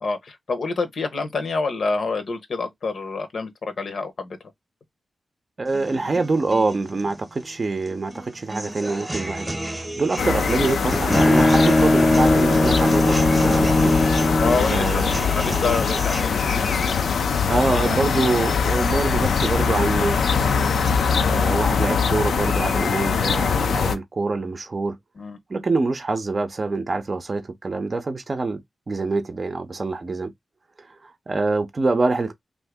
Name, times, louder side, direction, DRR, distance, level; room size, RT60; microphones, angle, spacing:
voice 1, 0.0-4.4 14.4-16.9 17.7-18.0 25.2-25.4, left 4 dB, 70° left, 0.8 m, -27 dB
voice 2, 5.6-9.5 9.7-13.9 14.7-15.2 17.5-20.5 21.3-25.0 25.5-28.6 28.9-30.3 31.0-32.3, right 3 dB, 45° right, 0.5 m, -25 dB
sound 1, 5.7-21.7, right 1 dB, 20° right, 0.9 m, -33 dB
sound 2, 10.2-23.9, left 6 dB, 85° left, 0.4 m, -22 dB
Bowed string instrument, 10.6-14.8, left 1 dB, 20° left, 0.4 m, -19 dB
2.6 x 2.5 x 3.4 m
cardioid pair, 70°, 0 cm